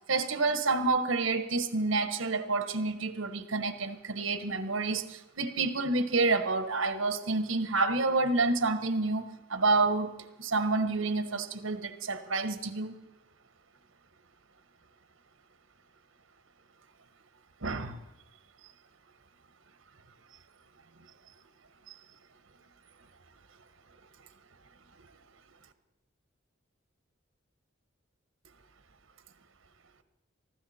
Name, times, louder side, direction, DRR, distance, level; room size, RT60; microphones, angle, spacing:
voice 1, 0.1-13.0 17.6-18.0, right 3 dB, 85° right, 10 dB, 1.2 m, -29 dB
19.0 x 15.0 x 4.3 m, 0.95 s
head